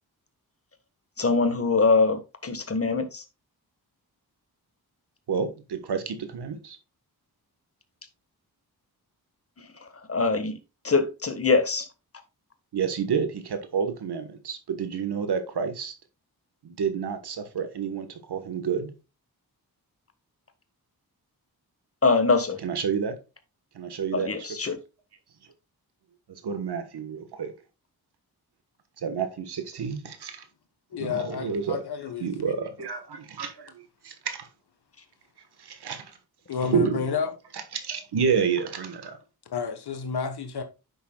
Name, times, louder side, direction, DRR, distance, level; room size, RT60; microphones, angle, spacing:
voice 1, 1.2-3.2 10.1-10.6 10.8-11.9 22.0-22.6 24.1-24.8, left 4 dB, 35° left, 1.4 m, -23 dB
voice 2, 5.3-6.8 12.7-15.9 16.6-18.9 22.6-23.2 23.7-24.4 26.3-27.5 29.0-30.4 31.0-31.8 32.2-34.5 35.6-36.1 36.6-36.9 37.5-39.2, right 6 dB, 90° right, 1.3 m, -29 dB
voice 3, 30.9-32.5 36.5-37.3 39.5-40.6, left 5 dB, 90° left, 1.3 m, -30 dB
9.4 x 6.8 x 2.3 m
wide cardioid pair, 100°, 38 cm